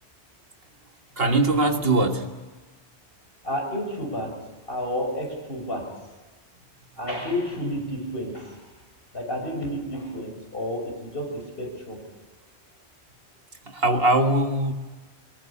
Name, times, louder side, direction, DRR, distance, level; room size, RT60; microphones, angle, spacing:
voice 1, 1.2-2.3 13.7-14.7, right 2 dB, 60° right, 5 dB, 1.8 m, -21 dB
voice 2, 3.4-4.4 4.7-5.9 7.0-8.6 9.1-12.0, equal, 55° left, 1 dB, 6.6 m, -31 dB
23.0 x 21.5 x 7.3 m, 1.3 s
omnidirectional pair, 1.1 m